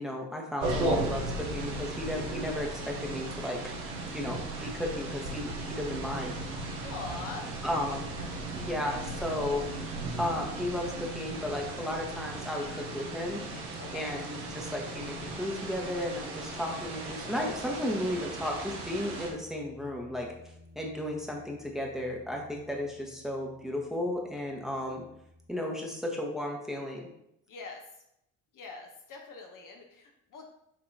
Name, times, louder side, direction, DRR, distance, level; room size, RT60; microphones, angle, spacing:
voice 1, 0.0-3.6 4.0-6.4 7.6-8.1 8.6-9.7 10.2-13.4 13.9-20.3 20.8-25.0 25.5-27.1, left 1 dB, ahead, 0 dB, 0.9 m, -34 dB
sound 1, 0.6-19.3, right 2 dB, 80° right, 0.7 m, -36 dB
voice 2, 6.8-7.4 13.8-14.1 27.5-27.8 28.5-30.5, left 3 dB, 50° left, 2 dB, 0.8 m, -43 dB
sound 2, 10.4-25.5, left 3 dB, 20° left, 1.5 m, -53 dB
5.9 x 2.8 x 2.6 m, 0.79 s
figure-of-eight pair, 45°, 42 cm